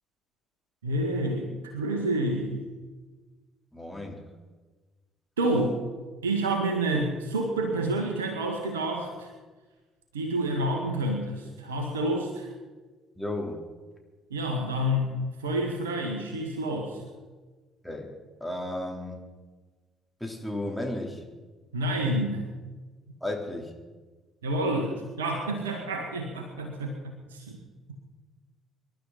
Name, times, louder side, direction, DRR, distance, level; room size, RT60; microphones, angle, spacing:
voice 1, 0.8-1.5 1.7-2.7 5.4-5.7 6.2-9.3 10.1-12.5 14.3-17.0 21.7-22.5 24.4-27.6, right 1 dB, 85° right, 2 dB, 1.7 m, -29 dB
voice 2, 3.7-4.2 13.2-13.6 17.8-18.1 18.4-19.2 20.2-21.2 23.2-23.7, left 1 dB, ahead, 0 dB, 3.8 m, -33 dB
26.0 x 12.0 x 4.2 m, 1.3 s
hypercardioid pair, 50°, 0 cm